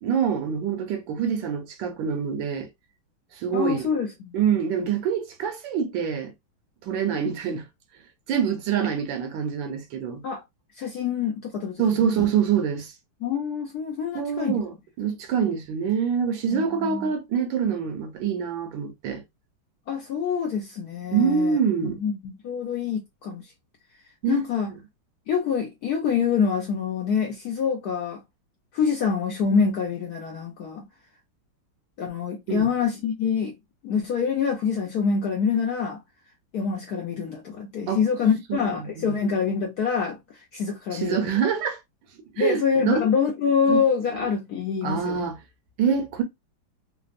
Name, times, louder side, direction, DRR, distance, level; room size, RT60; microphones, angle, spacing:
voice 1, 0.0-2.7 3.3-3.9 4.3-6.3 6.8-7.7 8.3-10.2 11.8-12.9 14.1-19.2 21.1-22.0 24.2-24.4 32.5-32.7 37.9-38.0 38.5-39.2 40.9-41.8 42.3-43.0 43.7-43.8 44.8-45.4 45.8-46.2, right 7 dB, 75° right, 1.3 m, -25 dB
voice 2, 3.5-4.3 10.2-10.4 10.8-12.3 13.2-14.6 16.5-17.1 19.9-21.6 21.9-23.5 24.3-24.7 25.3-28.2 28.7-30.9 32.0-33.6 33.8-36.0 36.5-41.3 42.4-45.3, left 6 dB, 75° left, 0.9 m, -26 dB
3.4 x 2.0 x 2.4 m
omnidirectional pair, 2.2 m